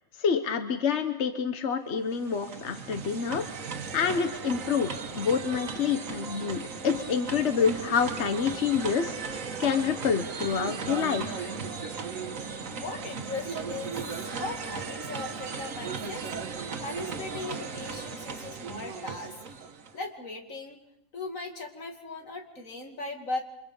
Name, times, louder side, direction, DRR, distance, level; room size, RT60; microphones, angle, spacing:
voice 1, 0.2-11.5, left 6 dB, 60° left, 8 dB, 1.4 m, -28 dB
sound 1, 2.0-20.0, right 5 dB, 85° right, 1.7 m, -37 dB
voice 2, 12.7-19.3 19.9-20.8 21.1-23.4, left 3 dB, 85° left, 3 dB, 2.9 m, -38 dB
29.5 x 25.5 x 5.5 m, 0.81 s
omnidirectional pair, 1.3 m